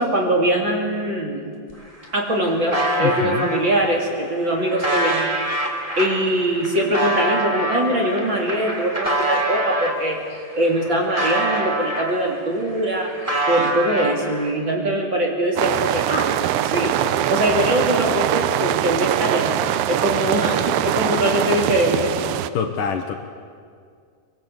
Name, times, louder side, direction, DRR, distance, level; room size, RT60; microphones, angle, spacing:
voice 1, 0.0-1.4 2.1-5.3 6.0-10.2 10.5-16.3 16.6-16.9 17.3-19.5 19.9-22.2, right 1 dB, 30° right, 0 dB, 3.1 m, -22 dB
sound 1, 1.7-1.8 2.0-3.6 4.2-10.0 10.5-12.4 12.7-14.5, right 1 dB, 10° right, 2.2 m, -25 dB
voice 2, 3.0-3.5 22.5-23.1, left 7 dB, 70° left, 5 dB, 2.4 m, -25 dB
sound 2, 15.6-22.5, right 12 dB, 85° right, 2.8 m, -22 dB
23.5 x 23.0 x 8.1 m, 2.1 s
omnidirectional pair, 4.5 m